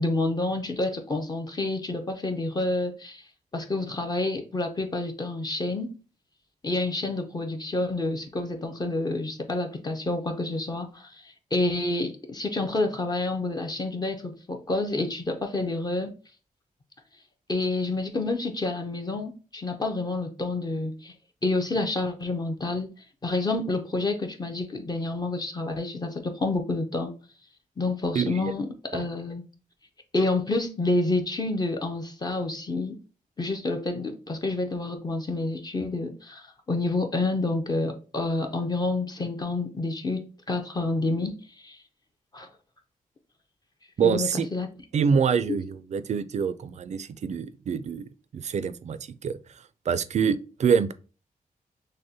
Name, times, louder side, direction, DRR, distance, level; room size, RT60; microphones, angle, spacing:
voice 1, 0.0-3.2 3.5-5.9 6.6-16.1 17.5-21.1 21.4-22.9 23.2-27.1 27.8-29.4 30.1-33.0 33.4-41.3 41.6-41.8 42.3-42.5 44.0-44.7 45.5-45.6, left 2 dB, 30° left, 0.5 m, -28 dB
voice 2, 28.2-28.5 28.9-29.0 44.0-44.5 44.9-49.3 49.9-50.9, right 6 dB, 55° right, 0.4 m, -26 dB
6.3 x 2.1 x 2.7 m
wide cardioid pair, 155°, 14 cm